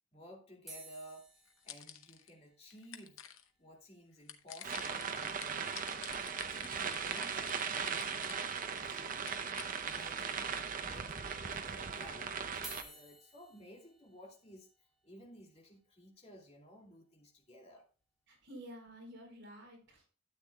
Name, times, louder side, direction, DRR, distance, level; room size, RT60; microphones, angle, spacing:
voice 1, 0.1-1.3 1.6-3.2 3.6-9.5 9.8-14.7 15.0-17.9, equal, 30° left, 2.4 m, -55 dB
sound 1, 0.7-5.0 5.3-5.4 5.6-5.7 6.1-6.3 7.6-7.7 8.4-8.9 9.4-9.5 10.4-10.5 12.5-18.6 19.1-19.4, right 1 dB, ahead, 3.4 m, -57 dB
sound 2, 1.5-2.3 2.7-3.5 4.3-8.8 9.2-9.8, left 10 dB, 80° left, 0.8 m, -50 dB
sound 3, 4.6-12.8, right 6 dB, 40° right, 0.7 m, -38 dB
voice 2, 18.3-20.1, equal, 60° right, 4.3 m, -51 dB
12.5 x 8.3 x 2.3 m
head